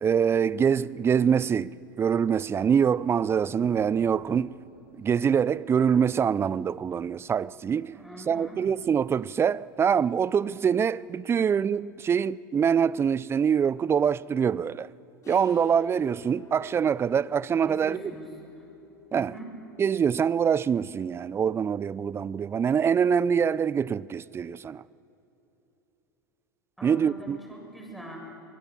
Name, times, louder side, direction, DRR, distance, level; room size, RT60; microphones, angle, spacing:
voice 1, 0.0-4.5 5.0-7.9 8.3-14.9 15.3-18.0 19.1-19.3 19.8-24.8 26.8-27.4, right 7 dB, 20° right, 0.5 m, -24 dB
Thunder, 0.8-10.8, right 4 dB, 80° right, 3.3 m, -56 dB
voice 2, 7.9-8.6 17.6-18.3 19.1-19.5 26.8-28.2, right 1 dB, ahead, 7.4 m, -42 dB
sound 1, 15.2-21.0, left 5 dB, 30° left, 6.6 m, -52 dB
24.5 x 22.5 x 8.5 m
hypercardioid pair, 85°, 11 cm